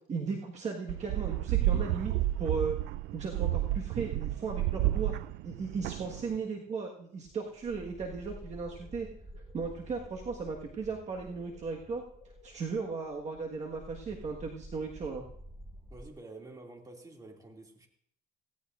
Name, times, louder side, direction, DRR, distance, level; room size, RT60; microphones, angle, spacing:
voice 1, 0.1-2.1 2.4-2.8 3.1-5.1 5.4-9.1 9.5-12.0 12.4-15.2, right 4 dB, 45° right, 0 dB, 1.6 m, -36 dB
sound 1, 0.9-6.4, right 14 dB, 85° right, 0.4 m, -31 dB
voice 2, 6.0-6.4 15.9-17.9, right 2 dB, 20° right, 1 dB, 2.4 m, -49 dB
sound 2, 7.2-16.1, equal, ahead, 0.8 m, -50 dB
sound 3, 7.8-14.3, left 5 dB, 60° left, 7.4 m, -61 dB
17.0 x 16.5 x 2.5 m, 0.65 s
cardioid pair, 110°, 17 cm